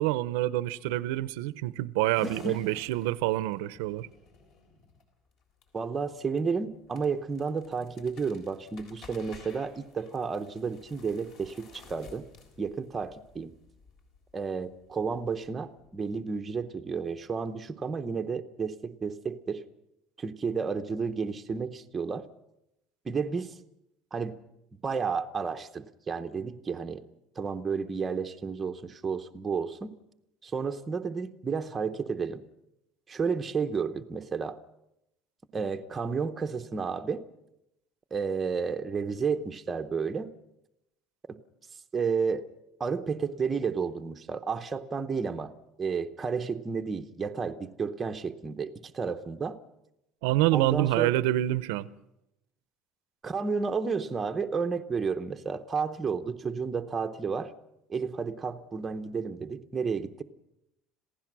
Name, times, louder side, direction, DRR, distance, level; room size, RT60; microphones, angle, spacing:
voice 1, 0.0-4.1 50.2-51.9, right 15 dB, 85° right, 0.8 m, -27 dB
sound 1, 2.1-16.4, left 3 dB, 45° left, 3.5 m, -54 dB
voice 2, 5.7-12.3 12.6-13.5 14.3-19.6 20.2-22.3 23.0-23.5 24.1-24.4 24.8-27.0 27.4-30.0 30.4-32.4 33.1-34.6 35.5-37.3 38.1-40.3 41.3-41.4 41.9-42.4 42.8-45.5 45.8-49.6 50.5-51.2 53.2-57.5 57.9-60.2, right 5 dB, 15° right, 0.7 m, -32 dB
27.0 x 16.0 x 6.1 m
cardioid pair, 180°, 0 cm